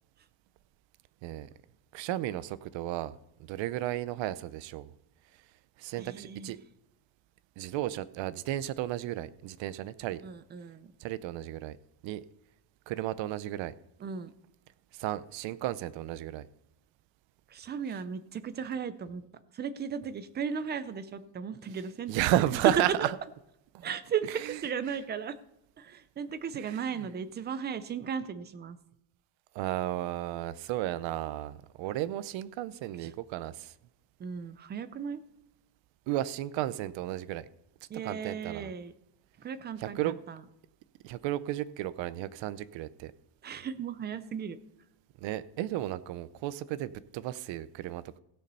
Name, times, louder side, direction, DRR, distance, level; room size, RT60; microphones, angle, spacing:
voice 1, 1.9-3.2 3.5-4.9 5.8-6.6 7.6-10.2 11.0-11.8 12.0-12.2 12.9-13.7 14.9-16.5 22.1-23.1 23.7-23.9 24.5-24.6 26.5-26.9 29.5-33.7 36.1-37.5 38.0-38.7 39.8-40.1 41.0-43.1 45.2-48.2, right 14 dB, 65° right, 15 dB, 0.7 m, -33 dB
voice 2, 6.0-6.5 10.2-10.9 14.0-14.3 17.5-19.2 19.5-22.2 22.5-23.1 23.8-25.4 25.8-28.8 33.0-33.1 34.2-35.2 37.9-38.9 39.4-40.4 43.4-44.6, right 7 dB, 25° right, 12 dB, 0.4 m, -35 dB
16.0 x 6.7 x 5.5 m, 0.85 s
cardioid pair, 175°, 49 cm